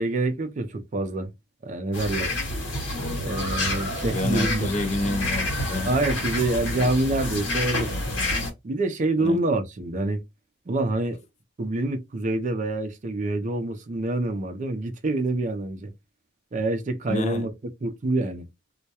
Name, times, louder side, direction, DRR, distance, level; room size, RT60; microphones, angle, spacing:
voice 1, 0.0-1.3 1.6-2.3 3.2-4.7 5.8-7.9 8.6-10.2 10.7-11.2 11.6-15.9 16.5-17.5 17.8-18.5, right 2 dB, 40° right, 0.5 m, -26 dB
sound 1, 1.9-8.5, left 1 dB, 80° left, 1.1 m, -28 dB
voice 2, 4.1-5.9 9.2-9.4 17.1-17.5, left 2 dB, 40° left, 0.5 m, -28 dB
2.2 x 2.1 x 2.7 m
head